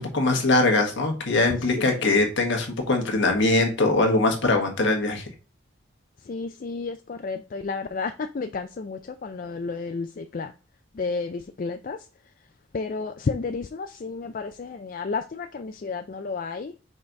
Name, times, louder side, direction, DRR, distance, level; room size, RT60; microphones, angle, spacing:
voice 1, 0.0-5.2, left 2 dB, 60° left, 3 dB, 1.5 m, -22 dB
voice 2, 6.3-10.5 11.0-12.0 12.7-16.7, left 4 dB, 40° left, 8 dB, 0.3 m, -31 dB
5.3 x 4.0 x 4.6 m, 0.36 s
head